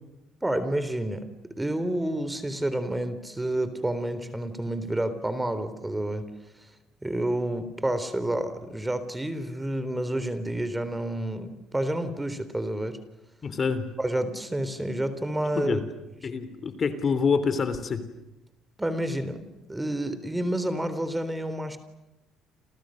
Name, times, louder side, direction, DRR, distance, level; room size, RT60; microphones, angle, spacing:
voice 1, 0.4-1.3 1.6-6.3 7.0-13.0 14.0-15.8 18.8-21.8, right 1 dB, 10° right, 12 dB, 3.8 m, -29 dB
voice 2, 13.4-13.9 15.6-15.8 16.2-18.0, left 5 dB, 40° left, 12 dB, 3.4 m, -26 dB
29.5 x 29.5 x 6.6 m, 0.96 s
cardioid pair, 100°, 0 cm